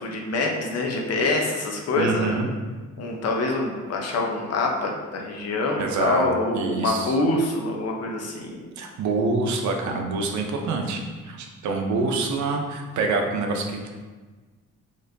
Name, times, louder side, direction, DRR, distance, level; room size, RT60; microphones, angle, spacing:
voice 1, 0.0-2.4 3.0-8.6, left 2 dB, 55° left, 0 dB, 0.7 m, -25 dB
voice 2, 2.0-2.5 5.8-6.2 6.5-7.2 8.8-13.9, right 3 dB, 70° right, 3 dB, 0.6 m, -26 dB
4.1 x 3.1 x 2.7 m, 1.3 s
cardioid pair, 90°, 30 cm